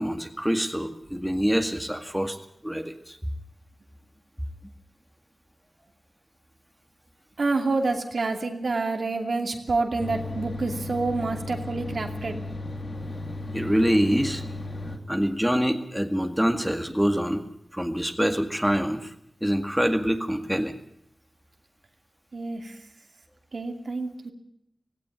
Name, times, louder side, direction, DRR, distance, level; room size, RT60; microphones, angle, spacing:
voice 1, 0.0-2.4 2.6-3.2 13.5-14.4 15.1-17.4 17.7-19.1 19.4-20.7, equal, 5° right, 5 dB, 2.0 m, -25 dB
voice 2, 7.4-12.4 22.3-22.8 23.5-24.3, right 3 dB, 75° right, 4 dB, 2.6 m, -28 dB
sound 1, 10.0-15.0, left 2 dB, 50° left, 2.7 m, -35 dB
17.5 x 16.5 x 9.1 m, 0.73 s
wide cardioid pair, 65°, 0 cm